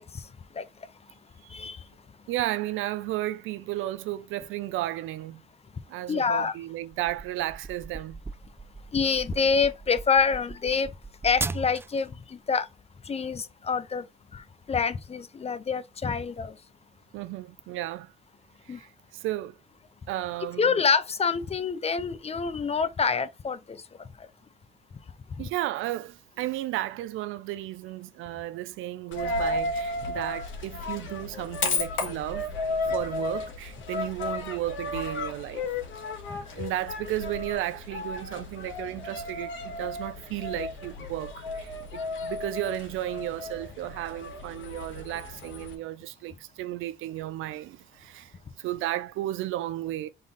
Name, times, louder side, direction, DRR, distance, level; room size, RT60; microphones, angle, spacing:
voice 1, 1.4-1.8 2.3-5.4 5.9-8.2 17.1-18.1 18.6-19.5 20.1-20.8 25.4-32.5 32.9-35.7 36.5-50.1, right 15 dB, 90° right, 0.5 m, -34 dB
voice 2, 6.1-6.5 8.9-10.9 11.2-12.7 13.1-14.0 14.3-16.5 18.7-18.8 20.6-23.8 36.3-36.4, left 5 dB, 30° left, 0.6 m, -26 dB
sound 1, 6.9-12.1, right 3 dB, 10° right, 0.3 m, -38 dB
Coin (dropping), 29.1-45.7, left 2 dB, 75° left, 1.8 m, -34 dB
3.7 x 3.5 x 4.0 m
cardioid pair, 90°, 20 cm